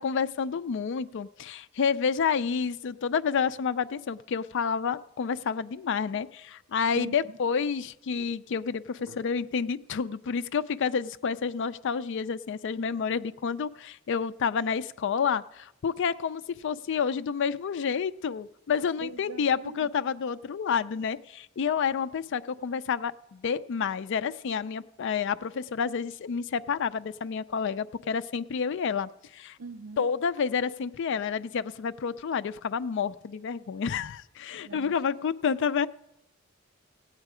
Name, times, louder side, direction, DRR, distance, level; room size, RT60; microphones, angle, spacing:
voice 1, 0.0-29.6 30.0-35.9, left 6 dB, 60° left, 13 dB, 0.4 m, -29 dB
voice 2, 6.9-7.4 9.1-9.2 19.0-19.9 29.6-30.1 34.6-35.0, right 4 dB, 85° right, 9 dB, 0.5 m, -42 dB
16.5 x 8.9 x 4.9 m, 0.89 s
head